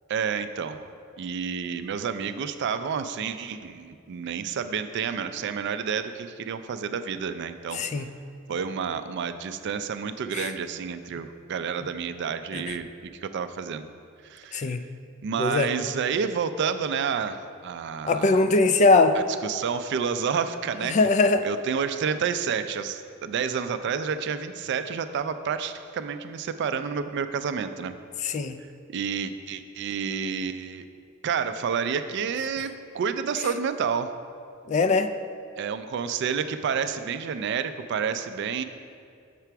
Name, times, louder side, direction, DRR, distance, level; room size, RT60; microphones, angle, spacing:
voice 1, 0.1-0.9 1.2-7.8 8.5-12.9 13.2-13.9 14.2-14.8 15.2-18.4 19.1-21.0 21.4-28.0 28.9-30.9 31.2-34.1 35.6-38.6, right 6 dB, 55° right, 10 dB, 0.3 m, -29 dB
voice 2, 7.7-8.0 10.3-10.5 12.5-12.6 14.5-14.8 15.4-15.7 18.1-19.2 20.9-21.5 28.2-28.6 34.7-35.1, left 3 dB, 35° left, 10 dB, 0.3 m, -21 dB
6.7 x 5.9 x 4.5 m, 2.3 s
head